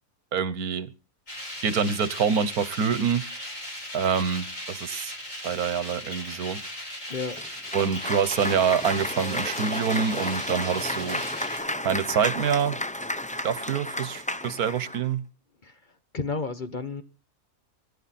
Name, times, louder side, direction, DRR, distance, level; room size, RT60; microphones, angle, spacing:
voice 1, 0.3-0.9 1.6-3.4 3.9-5.1 5.4-6.6 7.7-11.2 11.8-12.8 13.4-15.2, right 7 dB, 85° right, 1.6 m, -26 dB
sound 1, 1.3-11.6, left 1 dB, 60° left, 7.0 m, -38 dB
Cheering / Applause, 7.4-15.1, left 1 dB, 10° left, 0.3 m, -32 dB
voice 2, 16.1-17.0, left 4 dB, 35° left, 1.2 m, -31 dB
24.0 x 11.5 x 4.3 m
omnidirectional pair, 1.5 m